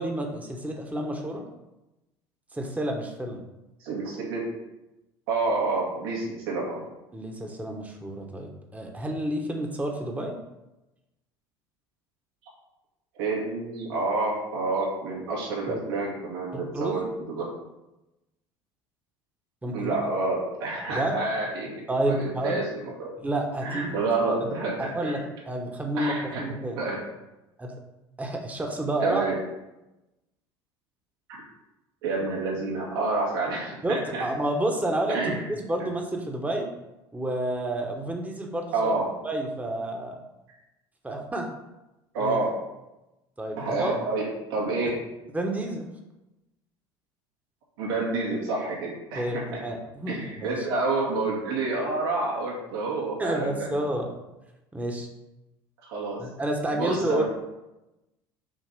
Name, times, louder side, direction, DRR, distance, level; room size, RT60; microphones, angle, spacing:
voice 1, 0.0-1.4 2.5-3.4 7.1-10.4 15.7-15.8 16.5-17.0 19.6-20.0 20.9-21.2 21.9-22.6 23.2-24.0 24.4-24.5 24.8-26.8 27.6-27.8 28.2-29.2 33.8-36.7 37.1-38.9 39.2-40.2 41.0-41.5 42.2-42.4 43.4-44.0 45.3-45.9 49.2-50.7 53.2-54.1 54.7-55.1 56.2-57.2, right 1 dB, 10° right, 2 dB, 1.0 m, -30 dB
voice 2, 3.8-4.4 5.3-6.8 13.2-17.5 19.7-21.7 22.1-23.1 23.6-24.8 25.0-25.2 26.0-26.4 26.8-27.0 29.0-29.4 31.3-31.4 32.0-34.2 35.1-35.4 38.7-39.1 42.1-42.5 43.6-44.2 44.5-44.9 47.8-49.4 50.1-53.8 55.8-56.2 56.7-57.2, right 3 dB, 85° right, -4 dB, 2.3 m, -28 dB
7.5 x 2.9 x 5.2 m, 0.97 s
hypercardioid pair, 80°, 12 cm